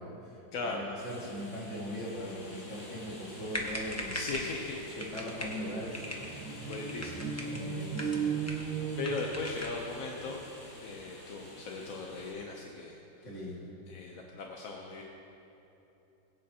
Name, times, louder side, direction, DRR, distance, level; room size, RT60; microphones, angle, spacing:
voice 1, 0.0-0.4 0.7-4.4 5.0-6.0 6.4-6.7 7.5-8.3 13.2-13.7, equal, 40° left, -5 dB, 2.3 m, -40 dB
voice 2, 0.5-0.9 4.1-5.0 6.7-7.5 9.0-10.4 10.8-13.0 13.9-15.0, left 3 dB, 60° left, 0 dB, 1.0 m, -38 dB
sound 1, 1.0-12.3, left 1 dB, 80° left, 3.4 m, -50 dB
sound 2, 3.5-4.6 5.0-5.6 5.9-6.3 6.7-7.6 7.9-8.7 9.0-9.8, left 1 dB, 15° left, 0.5 m, -40 dB
sound 3, 5.0-9.9, right 6 dB, 80° right, 1.7 m, -37 dB
20.5 x 8.5 x 2.9 m, 3.0 s
omnidirectional pair, 2.0 m